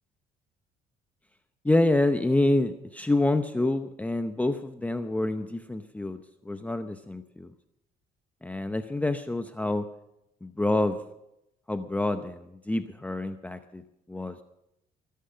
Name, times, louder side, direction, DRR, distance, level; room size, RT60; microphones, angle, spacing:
voice 1, 1.6-7.5 8.4-9.9 10.4-11.0 11.7-13.8 14.1-14.4, left 2 dB, 10° left, 8 dB, 0.7 m, -27 dB
20.5 x 10.5 x 5.7 m, 0.84 s
cardioid pair, 110°, 17 cm